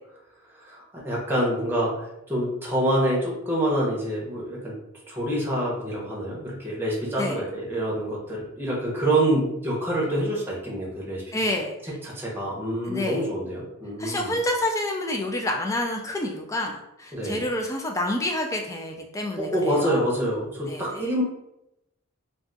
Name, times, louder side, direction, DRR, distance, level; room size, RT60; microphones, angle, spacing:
voice 1, 0.5-4.7 5.0-11.2 11.8-14.4 17.1-17.4 19.4-21.2, right 1 dB, 10° right, -4 dB, 0.7 m, -26 dB
voice 2, 11.3-11.8 12.9-13.2 14.0-20.0 20.7-20.8, left 1 dB, 15° left, 1 dB, 0.3 m, -28 dB
2.4 x 2.4 x 3.8 m, 0.85 s
head